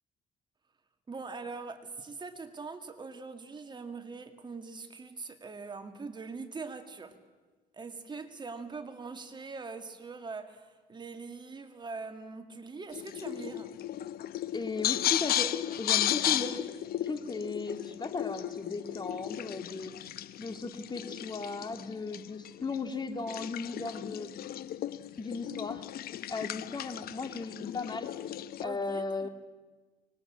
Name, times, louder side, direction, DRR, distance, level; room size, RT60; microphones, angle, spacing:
voice 1, 1.1-7.1 7.7-13.7 28.6-29.3, right 4 dB, 25° right, 7 dB, 2.2 m, -42 dB
sound 1, 12.9-28.6, left 12 dB, 65° left, 0.9 m, -35 dB
voice 2, 14.5-16.6 17.0-20.0 20.4-24.4 25.2-25.9 26.3-28.1 28.6-29.3, left 4 dB, 25° left, 8 dB, 2.0 m, -36 dB
24.0 x 21.0 x 8.8 m, 1.3 s
cardioid pair, 110°, 17 cm